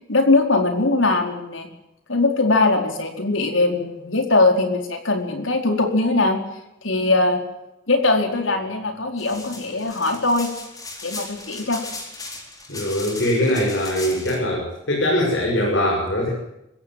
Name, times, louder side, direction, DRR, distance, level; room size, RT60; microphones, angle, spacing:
voice 1, 0.1-1.7 2.1-6.4 6.8-7.4 7.9-10.5 11.0-11.8, left 2 dB, 75° left, 4 dB, 4.5 m, -20 dB
sound 1, 9.2-14.4, left 3 dB, 20° left, 4.2 m, -37 dB
voice 2, 12.7-16.3, left 1 dB, 60° left, -2 dB, 7.0 m, -22 dB
26.0 x 15.5 x 7.7 m, 0.90 s
head